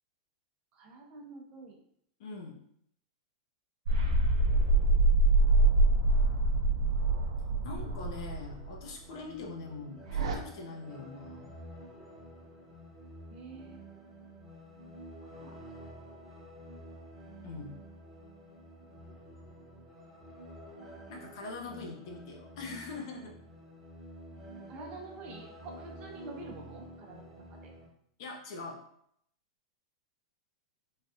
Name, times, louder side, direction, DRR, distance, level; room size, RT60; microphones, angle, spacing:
voice 1, 0.7-1.8 7.5-7.7 13.3-13.8 15.2-15.6 24.7-27.6, right 3 dB, 35° right, 1 dB, 0.6 m, -48 dB
voice 2, 2.2-2.6 7.6-11.6 17.4-17.8 21.1-23.3 28.2-28.8, left 3 dB, 60° left, 0 dB, 0.7 m, -43 dB
sound 1, 3.9-8.8 10.1-10.3, right 2 dB, 85° right, 0.4 m, -25 dB
sound 2, 8.1-27.9, equal, 5° right, 1.0 m, -50 dB
3.3 x 2.3 x 2.7 m, 0.70 s
supercardioid pair, 145°, 3 cm